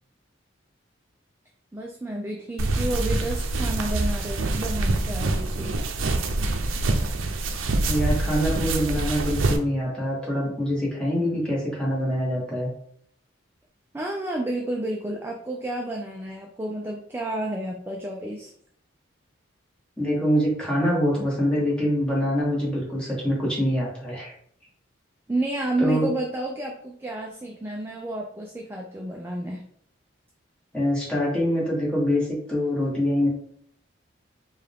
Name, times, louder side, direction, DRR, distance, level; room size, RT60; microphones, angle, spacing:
voice 1, 1.7-5.7 13.9-18.5 25.3-29.6, right 1 dB, 10° right, 0 dB, 0.3 m, -30 dB
sound 1, 2.6-9.6, right 2 dB, 80° right, 0.5 m, -25 dB
voice 2, 7.9-12.7 20.0-24.3 25.8-26.1 30.7-33.3, equal, 5° left, -6 dB, 1.3 m, -25 dB
4.7 x 2.3 x 3.5 m, 0.65 s
head